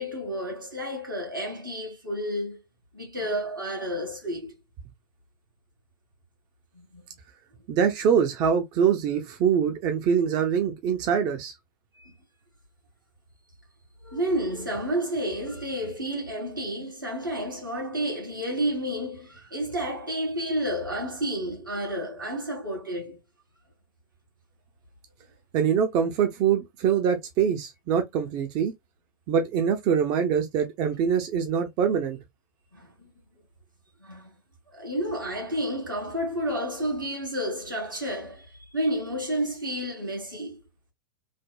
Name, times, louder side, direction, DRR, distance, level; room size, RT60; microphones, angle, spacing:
voice 1, 0.0-2.6 2.9-4.5 6.7-7.0 11.9-12.1 14.0-23.2 32.7-33.1 34.0-34.3 34.7-40.6, equal, 90° right, 1.6 m, -31 dB
voice 2, 7.7-11.5 25.5-28.7 29.3-32.2, right 7 dB, 40° right, 0.6 m, -24 dB
3.3 x 2.1 x 2.2 m
figure-of-eight pair, 95°, 11 cm